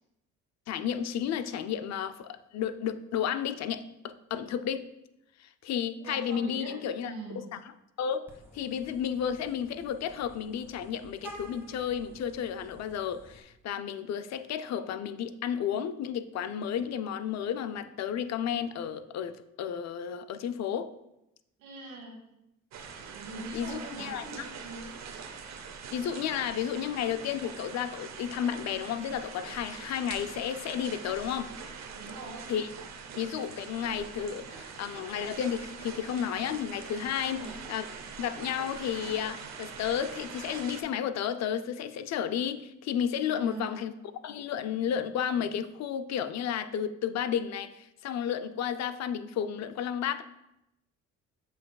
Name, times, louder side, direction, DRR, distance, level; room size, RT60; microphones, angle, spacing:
voice 1, 0.7-4.9 5.4-7.6 8.0-8.2 8.5-20.9 23.5-24.5 25.9-31.5 32.5-32.7 33.2-37.9 38.2-43.9 44.2-50.2, left 8 dB, 60° left, 11 dB, 0.5 m, -32 dB
voice 2, 6.0-6.8 7.0-7.4 21.6-22.2 23.1-24.9 31.9-32.5 37.2-37.5 43.3-43.8, right 3 dB, 80° right, 0 dB, 1.4 m, -42 dB
Vehicle horn car horn honking, 8.3-13.4, right 1 dB, 10° right, 1.6 m, -51 dB
sound 1, 22.7-40.8, right 6 dB, 60° right, 0.8 m, -43 dB
7.5 x 5.8 x 2.3 m, 0.88 s
cardioid pair, 90°, 30 cm